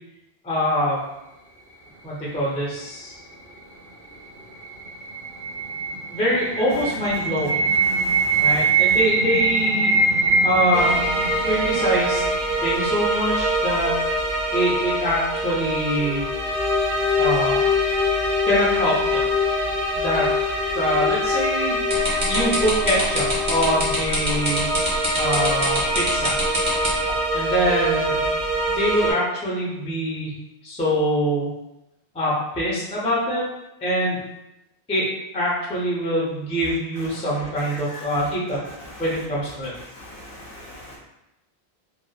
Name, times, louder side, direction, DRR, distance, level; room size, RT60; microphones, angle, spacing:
voice 1, 0.4-1.0 2.0-3.2 6.1-7.6 8.3-10.1 10.4-10.9 11.4-12.2 12.6-13.9 14.5-16.2 17.2-17.7 18.4-19.2 19.9-20.3 20.7-21.7 22.2-24.7 25.2-26.4 27.3-30.3 30.6-31.5 32.1-33.5 33.8-34.2 34.9-35.1 35.3-38.6 39.0-39.7, equal, 10° left, -6 dB, 0.3 m, -24 dB
sound 1, 4.3-13.3, right 3 dB, 60° right, 0.8 m, -23 dB
voice 2, 7.9-8.5 37.9-38.0 40.0-41.0, left 1 dB, 65° left, -3 dB, 0.7 m, -40 dB
sound 2, 10.7-29.1, left 1 dB, 85° right, 1.0 m, -24 dB
sound 3, 21.9-27.1, right 1 dB, 30° right, 0.8 m, -24 dB
2.8 x 2.0 x 2.2 m, 0.94 s
omnidirectional pair, 1.1 m